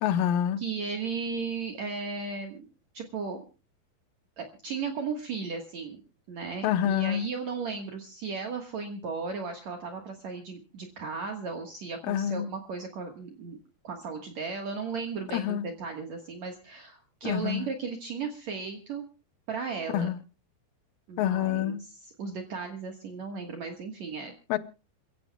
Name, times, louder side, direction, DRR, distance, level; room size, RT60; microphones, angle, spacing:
voice 1, 0.0-0.6 6.6-7.3 12.1-12.5 15.3-15.6 17.2-17.7 19.9-20.2 21.2-21.8 24.5-24.6, left 10 dB, 75° left, 2.5 m, -27 dB
voice 2, 0.6-2.6 2.9-3.4 4.4-6.0 6.3-13.6 13.8-19.0 19.5-20.1 21.1-21.7 22.2-24.3, right 5 dB, 55° right, 2.4 m, -35 dB
28.0 x 15.5 x 2.3 m
omnidirectional pair, 4.3 m